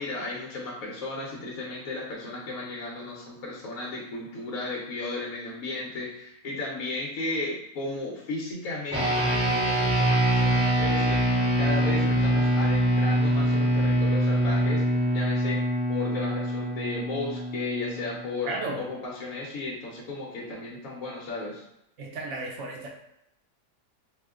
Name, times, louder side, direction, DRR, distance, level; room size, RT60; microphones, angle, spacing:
voice 1, 0.0-15.6 15.9-18.5 18.8-21.6, left 2 dB, 70° left, -4 dB, 1.1 m, -35 dB
sound 1, 8.9-18.6, right 1 dB, 5° right, 0.8 m, -24 dB
voice 2, 18.5-18.8 22.0-22.9, right 2 dB, 65° right, 0 dB, 0.8 m, -33 dB
2.8 x 2.2 x 3.5 m, 0.81 s
omnidirectional pair, 1.6 m